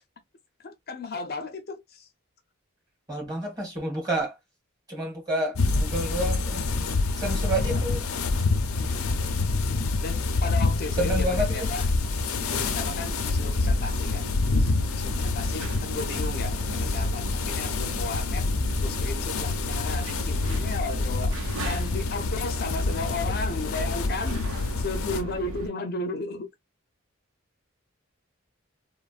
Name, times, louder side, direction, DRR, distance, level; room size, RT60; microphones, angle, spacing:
voice 1, 0.6-2.1 7.5-7.8 8.7-9.0 10.0-11.9 12.5-14.3 14.5-18.5 18.8-26.5, left 3 dB, 45° left, 0.5 m, -35 dB
voice 2, 3.1-4.3 4.9-6.7 7.1-8.0 11.0-11.7, right 1 dB, 20° right, 1.3 m, -29 dB
sound 1, 5.5-25.2, left 3 dB, 90° left, 0.6 m, -27 dB
sound 2, 12.3-25.7, right 1 dB, 85° right, 0.9 m, -38 dB
3.2 x 2.1 x 2.3 m
head